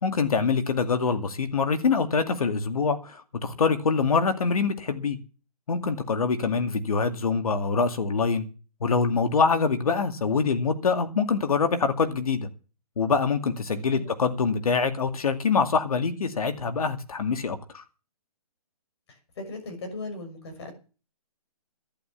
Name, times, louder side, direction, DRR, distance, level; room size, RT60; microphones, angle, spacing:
voice 1, 0.0-5.2 5.7-8.4 8.8-12.5 13.0-17.8, left 5 dB, 70° left, 2.3 m, -25 dB
voice 2, 6.4-6.8 13.9-14.1 19.1-20.7, left 2 dB, 45° left, 6.3 m, -39 dB
11.5 x 11.0 x 7.2 m
hypercardioid pair, 170°, 20 cm